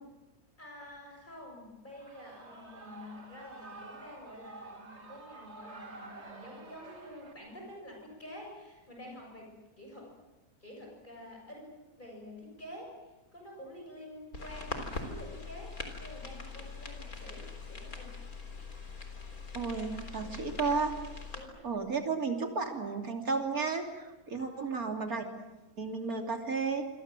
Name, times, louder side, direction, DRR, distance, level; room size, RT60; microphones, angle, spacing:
voice 1, 0.6-10.1 10.6-18.2 20.2-20.5 21.3-21.7 24.4-24.8, left 1 dB, 30° left, -1 dB, 7.3 m, -49 dB
Shout / Cheering, 1.9-7.3, right 3 dB, 45° right, 2.5 m, -49 dB
sound 1, 14.3-21.4, left 3 dB, 70° left, 4.1 m, -42 dB
voice 2, 19.5-20.9 21.6-25.2 25.8-26.9, right 4 dB, 70° right, 4 dB, 3.5 m, -33 dB
27.0 x 26.0 x 7.7 m, 1.0 s
omnidirectional pair, 1.6 m